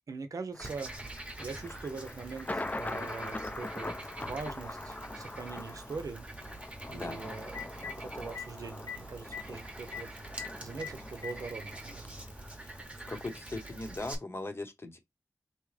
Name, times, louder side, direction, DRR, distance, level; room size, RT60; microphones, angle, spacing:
voice 1, 0.1-0.9 1.4-6.3 6.9-10.2 10.6-12.2, right 4 dB, 70° right, 0.7 m, -42 dB
Thunder, 0.5-12.8, left 2 dB, 25° left, 0.5 m, -43 dB
Frog, 0.6-14.2, right 2 dB, 20° right, 0.9 m, -46 dB
Telephone, 4.7-4.8 7.0-7.1 7.4-7.9 8.3-8.5 8.9-9.0 9.2-9.4 9.9-10.0 10.4-10.5 10.8-11.4 12.4-12.5 13.9-14.0, left 7 dB, 65° left, 1.2 m, -40 dB
voice 2, 13.1-15.0, left 2 dB, 40° left, 0.8 m, -39 dB
3.6 x 2.9 x 3.2 m
wide cardioid pair, 95°, 6 cm